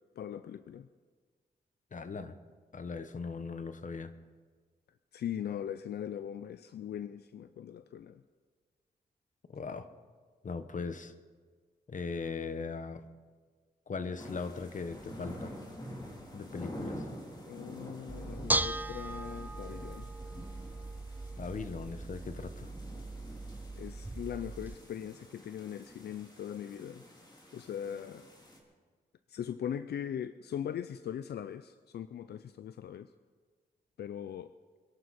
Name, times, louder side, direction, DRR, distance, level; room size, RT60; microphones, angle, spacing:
voice 1, 0.2-0.9 5.1-8.2 17.5-20.1 23.8-27.0 27.5-28.3 29.3-33.1 34.0-34.5, left 9 dB, 80° left, 12 dB, 0.5 m, -40 dB
voice 2, 1.9-2.4 2.7-4.1 9.5-9.9 10.4-11.1 11.9-13.0 13.9-15.5 16.3-17.1 21.4-22.7, left 4 dB, 50° left, 10 dB, 1.1 m, -39 dB
sound 1, 14.2-28.6, equal, 25° left, 3.2 m, -48 dB
Bell / Dishes pots and pans, 18.1-24.7, right 2 dB, 10° right, 0.5 m, -38 dB
26.0 x 11.5 x 4.2 m, 1.5 s
cardioid pair, 80°, 17 cm